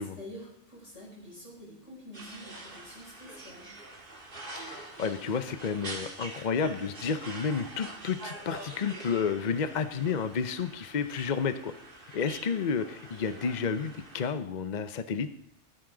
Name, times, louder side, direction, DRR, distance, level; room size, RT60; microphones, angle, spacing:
voice 1, 0.0-3.7, left 1 dB, 75° left, -5 dB, 6.4 m, -47 dB
sound 1, 2.1-14.3, right 2 dB, 45° right, 2.2 m, -45 dB
voice 2, 4.6-11.7 12.1-15.3, left 6 dB, 45° left, 11 dB, 0.7 m, -31 dB
15.5 x 13.0 x 3.8 m, 0.78 s
omnidirectional pair, 1.3 m